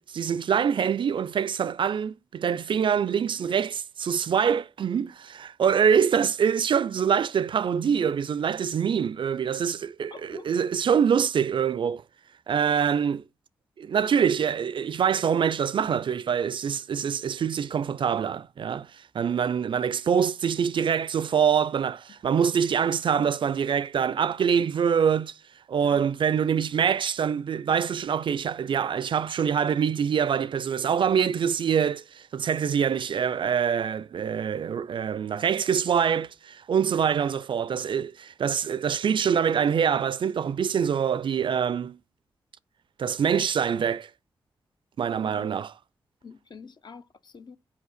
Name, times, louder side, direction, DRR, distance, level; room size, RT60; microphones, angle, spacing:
voice 1, 0.0-12.0 12.5-13.2 13.8-18.9 19.1-25.3 25.7-42.0 43.0-44.1 45.0-45.7, right 7 dB, 60° right, 0.4 m, -25 dB
voice 2, 10.1-10.5 25.8-26.1 45.2-45.5 46.2-47.6, left 5 dB, 50° left, 0.7 m, -46 dB
5.5 x 4.8 x 6.4 m
supercardioid pair, 45°, 9 cm